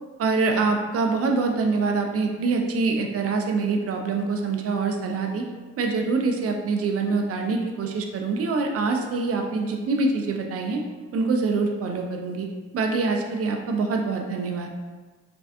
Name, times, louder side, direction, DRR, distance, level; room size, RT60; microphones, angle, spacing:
voice 1, 0.2-5.5 5.8-10.8 11.1-12.5 12.7-14.7, right 4 dB, 35° right, 3 dB, 0.4 m, -25 dB
3.3 x 2.3 x 2.5 m, 1.4 s
hypercardioid pair, 50°, 49 cm